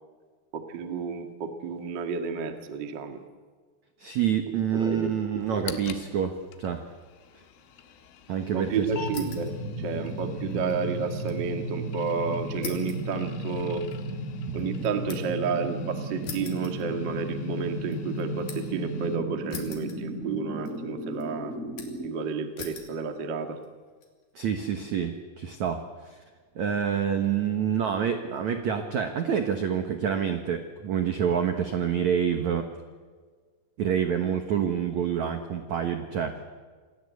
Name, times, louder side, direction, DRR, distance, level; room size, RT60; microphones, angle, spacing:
voice 1, 0.5-3.2 4.5-5.1 5.5-5.8 8.5-9.5 9.8-13.9 14.5-21.5 22.0-23.6, right 5 dB, 55° right, 6 dB, 1.2 m, -31 dB
voice 2, 4.0-6.8 8.3-8.9 10.4-10.6 14.5-14.6 24.4-26.2 26.6-32.7 33.8-36.4, right 8 dB, 75° right, 6 dB, 1.7 m, -27 dB
sound 1, 5.4-19.2, left 8 dB, 80° left, 4.0 m, -47 dB
sound 2, 8.9-22.1, right 1 dB, 15° left, 5.9 m, -34 dB
sound 3, 9.1-9.6 9.9-11.5 11.8-11.9 12.6-15.5 16.2-17.4 17.8-18.8 19.5-20.4 20.7-21.2 21.8-22.1 22.6-23.0 23.6-24.1, left 6 dB, 55° left, 4.3 m, -43 dB
28.0 x 20.5 x 8.4 m, 1.5 s
omnidirectional pair, 5.5 m